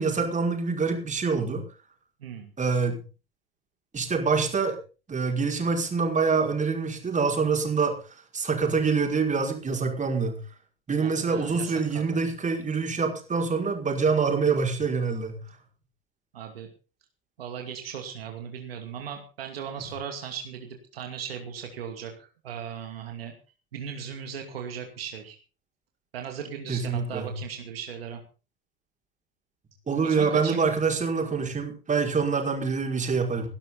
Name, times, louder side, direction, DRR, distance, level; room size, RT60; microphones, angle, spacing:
voice 1, 0.0-1.6 2.6-3.0 3.9-4.8 5.1-8.0 8.3-10.4 10.9-15.4 26.7-27.3 29.9-33.5, right 5 dB, 25° right, 3 dB, 5.2 m, -25 dB
voice 2, 2.2-2.5 11.0-12.2 16.3-16.7 17.4-23.3 23.7-25.4 26.1-28.2 30.0-30.6, right 7 dB, 80° right, 4 dB, 2.5 m, -37 dB
19.0 x 12.0 x 4.2 m, 0.35 s
hypercardioid pair, 70°, 30 cm